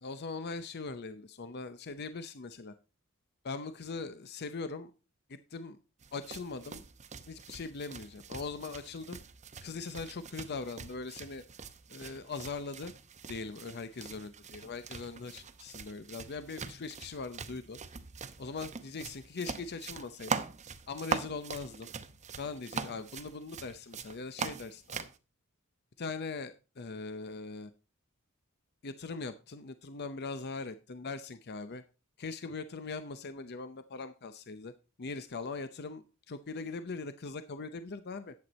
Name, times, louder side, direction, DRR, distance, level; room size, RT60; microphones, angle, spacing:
voice 1, 0.0-2.7 3.4-4.9 5.3-5.8 6.1-6.8 7.3-9.2 9.6-11.4 11.9-12.9 13.3-17.8 18.4-20.5 20.9-21.9 22.4-25.1 26.0-27.7 28.8-31.8 32.2-34.7 35.0-38.3, left 4 dB, 50° left, 11 dB, 0.6 m, -41 dB
sound 1, 6.0-25.2, right 5 dB, 35° right, 0.8 m, -42 dB
10.5 x 7.9 x 4.1 m, 0.32 s
head